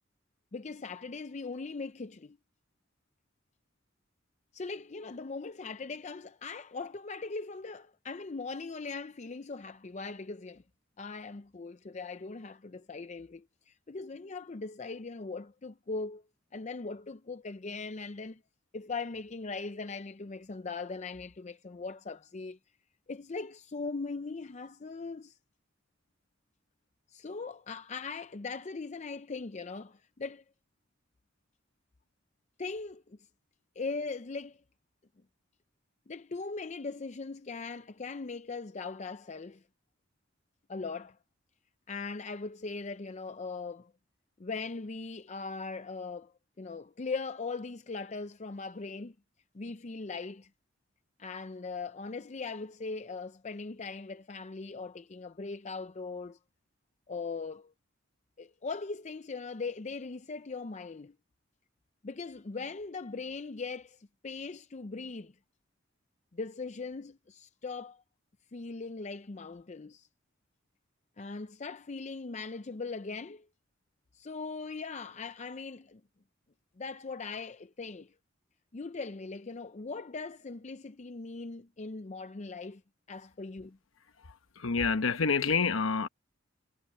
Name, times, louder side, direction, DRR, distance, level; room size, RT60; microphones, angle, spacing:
voice 1, 0.5-2.4 4.5-10.6 11.0-16.2 16.5-18.4 18.7-22.6 23.1-25.4 27.1-30.4 32.6-33.2 33.8-34.6 36.1-39.6 40.7-41.2 41.9-43.9 44.4-49.1 49.5-50.5 51.2-56.4 57.1-57.7 58.4-61.1 62.0-65.3 66.3-68.0 68.5-70.1 71.2-73.5 74.1-76.0 76.8-78.1 78.7-82.8 83.1-83.8, left 4 dB, 35° left, 0.5 m, -40 dB
voice 2, 84.2-86.1, left 5 dB, 90° left, 1.0 m, -28 dB
head